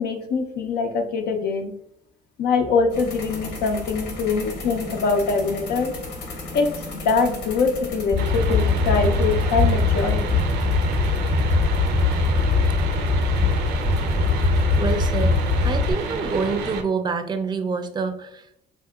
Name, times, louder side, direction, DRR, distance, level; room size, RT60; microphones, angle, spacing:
voice 1, 0.0-1.7 2.4-5.9 6.5-10.4, left 4 dB, 70° left, 5 dB, 0.5 m, -23 dB
sound 1, 2.9-15.8, left 1 dB, 90° left, 0.9 m, -37 dB
sound 2, 8.1-15.9, left 3 dB, 25° left, 0.8 m, -21 dB
sound 3, 8.2-16.8, right 4 dB, 85° right, 0.5 m, -30 dB
voice 2, 14.8-15.3 15.6-18.7, right 4 dB, 25° right, 7 dB, 0.5 m, -27 dB
3.6 x 2.8 x 2.3 m, 0.72 s
cardioid pair, 110°, 17 cm